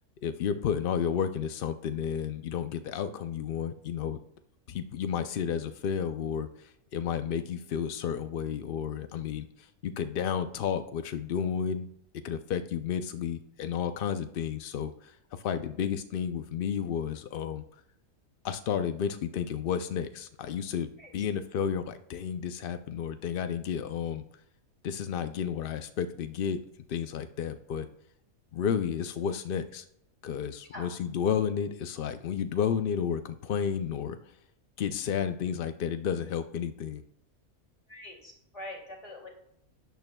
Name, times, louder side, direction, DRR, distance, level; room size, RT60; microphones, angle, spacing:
voice 1, 0.2-4.2 4.7-6.5 6.9-11.9 12.2-17.6 18.4-24.2 24.8-26.6 26.9-27.9 28.5-29.8 30.2-34.2 34.8-37.0, left 8 dB, 80° left, 10 dB, 0.5 m, -32 dB
voice 2, 37.9-39.3, left 1 dB, 25° left, -1 dB, 2.4 m, -43 dB
12.0 x 9.2 x 2.2 m, 0.74 s
omnidirectional pair, 1.5 m